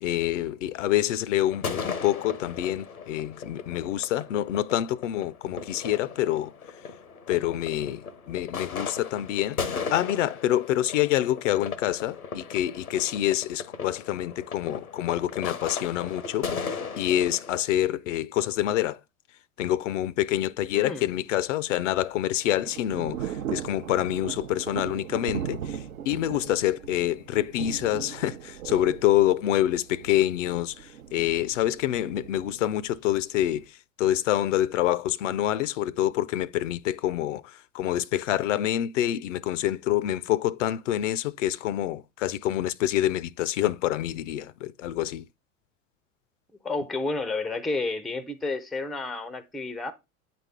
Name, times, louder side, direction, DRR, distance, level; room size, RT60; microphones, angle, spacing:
voice 1, 0.0-6.5 7.3-19.0 19.6-45.2, left 13 dB, 60° left, 0.5 m, -27 dB
sound 1, 1.5-17.6, left 5 dB, 85° left, 0.8 m, -37 dB
voice 2, 20.7-21.1 46.6-49.9, left 3 dB, ahead, 0.4 m, -30 dB
Thunder / Rain, 21.7-33.7, right 9 dB, 75° right, 0.7 m, -38 dB
8.8 x 4.2 x 3.4 m
figure-of-eight pair, 85°, 42 cm